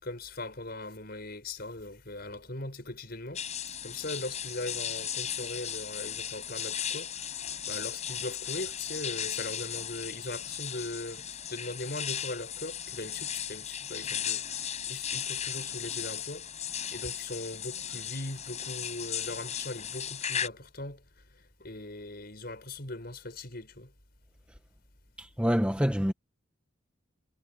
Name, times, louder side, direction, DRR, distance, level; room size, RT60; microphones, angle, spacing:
voice 1, 0.0-3.4 3.8-16.5 16.9-21.0 21.6-23.9, left 2 dB, 50° left, 5.5 m, -40 dB
sound 1, 3.4-20.5, left 9 dB, 35° left, 7.3 m, -36 dB
voice 2, 25.2-26.1, equal, 5° right, 1.3 m, -26 dB
head